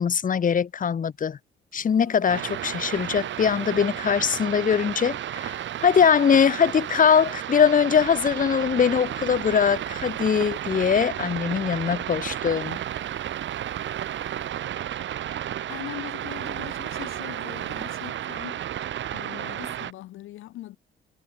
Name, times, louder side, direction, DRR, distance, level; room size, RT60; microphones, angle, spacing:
voice 1, 0.0-1.4 1.7-12.8, left 7 dB, 40° left, 1.5 m, -22 dB
Telephone, 1.7-4.1 5.3-7.7 8.9-11.3 12.5-14.9 16.1-18.5, right 15 dB, 90° right, 3.6 m, -51 dB
sound 1, 2.3-19.9, right 11 dB, 70° right, 3.2 m, -32 dB
voice 2, 15.7-18.6 19.1-20.8, left 15 dB, 90° left, 3.0 m, -40 dB
cardioid pair, 90°, 20 cm